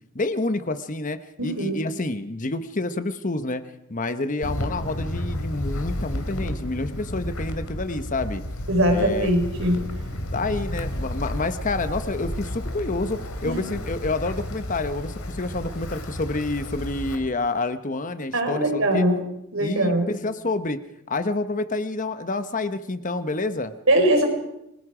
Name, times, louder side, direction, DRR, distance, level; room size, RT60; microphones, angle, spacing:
voice 1, 0.1-3.6 3.9-8.4 8.9-9.3 10.3-19.0 19.6-20.8 21.1-23.7, left 2 dB, 35° left, 10 dB, 1.0 m, -28 dB
voice 2, 1.4-1.8 8.7-9.8 13.4-13.6 18.3-19.2 19.5-20.1 23.9-24.3, right 1 dB, 65° right, 3 dB, 4.9 m, -21 dB
Wind, 4.4-17.2, left 1 dB, 75° left, 3.0 m, -32 dB
29.5 x 20.5 x 5.0 m, 0.84 s
head